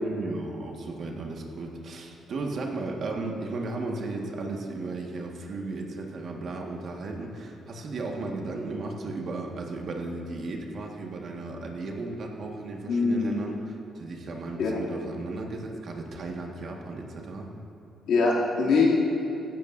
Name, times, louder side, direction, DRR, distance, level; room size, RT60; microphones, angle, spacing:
voice 1, 0.0-17.5, right 3 dB, 55° right, 1 dB, 1.6 m, -35 dB
voice 2, 12.9-13.3 14.6-14.7 18.1-18.9, left 4 dB, 75° left, -5 dB, 2.7 m, -23 dB
16.0 x 12.5 x 2.6 m, 3.0 s
cardioid pair, 90°, 0 cm